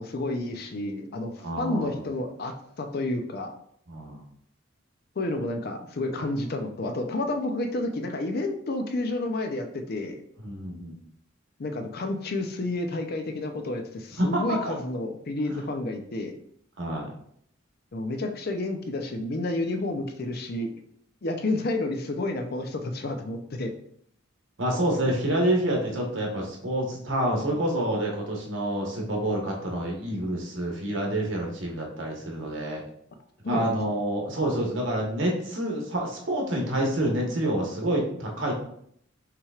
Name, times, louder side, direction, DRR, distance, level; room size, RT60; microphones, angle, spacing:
voice 1, 0.0-3.5 5.2-10.2 11.6-16.4 17.9-20.7 21.2-23.7 33.4-33.7, left 2 dB, 50° left, 6 dB, 0.5 m, -30 dB
voice 2, 1.4-2.0 3.9-4.2 10.4-11.0 14.2-14.8 16.8-17.1 24.6-32.8 33.5-38.6, right 1 dB, 65° right, 0 dB, 1.2 m, -28 dB
5.7 x 3.2 x 2.4 m, 0.67 s
head